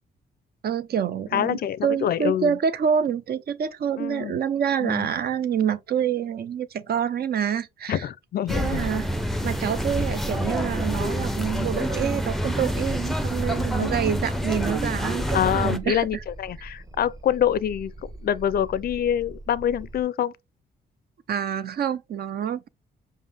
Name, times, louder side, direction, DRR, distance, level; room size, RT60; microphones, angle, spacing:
voice 1, 0.6-8.0 8.5-9.1 9.4-16.1 21.3-22.7, right 8 dB, 55° right, 0.5 m, -27 dB
voice 2, 1.3-2.6 4.0-4.4 4.8-5.1 7.9-8.8 15.3-20.3, left 10 dB, 55° left, 0.4 m, -26 dB
sound 1, 8.5-15.8, equal, ahead, 0.5 m, -27 dB
sound 2, 10.2-20.0, right 2 dB, 20° right, 1.0 m, -42 dB
5.3 x 2.1 x 3.4 m
cardioid pair, 75°, 19 cm